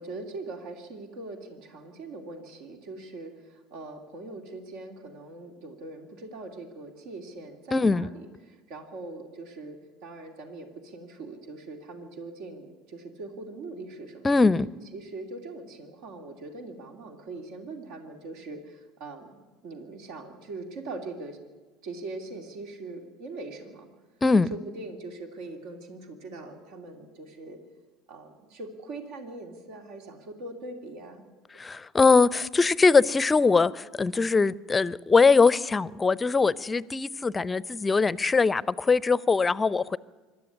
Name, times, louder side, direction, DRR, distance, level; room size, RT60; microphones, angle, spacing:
voice 1, 0.0-14.3 14.9-21.4 21.8-23.9 24.5-27.6 28.1-31.2, right 2 dB, 60° right, 2.6 m, -41 dB
voice 2, 7.7-8.1 14.2-14.7 24.2-24.5 31.6-40.0, left 4 dB, 20° left, 0.6 m, -22 dB
25.5 x 12.0 x 9.8 m
figure-of-eight pair, 70°, 0 cm